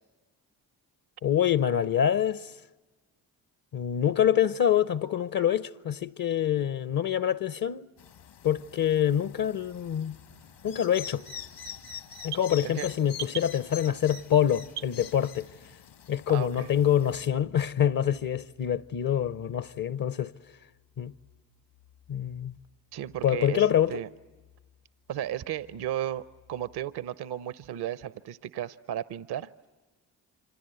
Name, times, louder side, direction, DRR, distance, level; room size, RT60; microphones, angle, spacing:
voice 1, 1.2-2.5 3.7-7.9 8.4-10.2 10.6-11.2 12.2-15.5 16.1-20.3 21.0-21.1 22.1-22.5 23.2-24.0, left 9 dB, 50° left, 0.8 m, -26 dB
sound 1, 8.0-17.3, left 8 dB, 70° left, 1.7 m, -45 dB
sound 2, 10.2-15.8, right 11 dB, 85° right, 1.7 m, -45 dB
sound 3, 16.3-26.9, left 8 dB, 90° left, 6.4 m, -60 dB
voice 2, 16.3-16.7 22.9-24.1 25.1-29.5, right 11 dB, 60° right, 0.8 m, -34 dB
26.5 x 26.0 x 7.9 m
hypercardioid pair, 40°, 44 cm